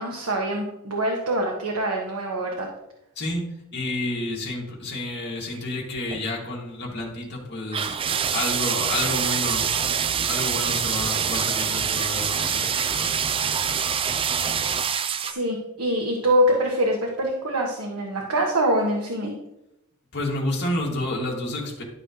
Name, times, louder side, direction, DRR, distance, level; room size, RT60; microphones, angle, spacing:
voice 1, 0.0-2.7 15.2-19.3, right 1 dB, 90° right, -1 dB, 1.4 m, -24 dB
voice 2, 3.7-8.0 8.3-9.7 10.3-13.2 20.1-21.8, left 1 dB, 50° left, -2 dB, 2.4 m, -30 dB
sound 1, 5.4-5.6 6.0-6.3 7.7-15.3, right 7 dB, 25° right, 0.3 m, -25 dB
12.0 x 6.3 x 3.2 m, 0.87 s
head